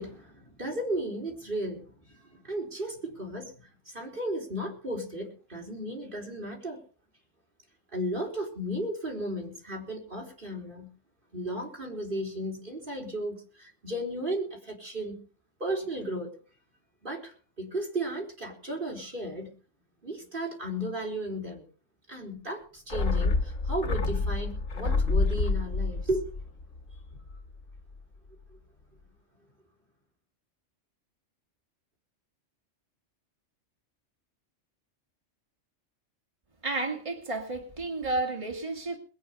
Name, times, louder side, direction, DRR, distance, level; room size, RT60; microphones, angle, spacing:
voice 1, 0.0-6.8 7.9-10.9 11.3-15.2 15.6-16.3 17.0-19.5 20.0-21.7 22.1-26.3 27.1-27.2, right 1 dB, 40° right, 4.2 m, -35 dB
sound 1, 22.9-27.5 27.8-27.9, left 3 dB, 85° left, 1.7 m, -28 dB
voice 2, 36.6-39.0, right 2 dB, 25° right, 2.3 m, -32 dB
21.5 x 8.8 x 5.3 m
omnidirectional pair, 1.3 m